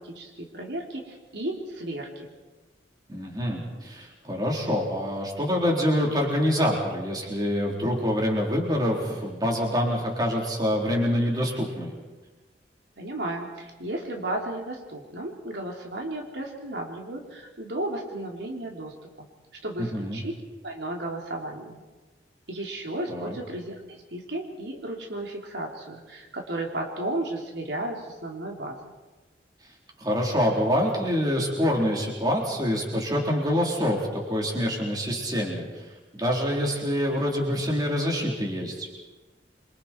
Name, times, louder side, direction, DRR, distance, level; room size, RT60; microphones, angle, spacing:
voice 1, 0.0-2.3 13.0-19.3 19.6-20.3 20.6-21.8 22.5-23.8 24.1-28.8, right 1 dB, 75° right, 0 dB, 3.4 m, -34 dB
voice 2, 3.1-11.9 19.8-20.2 23.1-23.4 30.0-38.9, equal, 20° right, -1 dB, 4.3 m, -26 dB
28.0 x 25.0 x 4.7 m, 1.2 s
head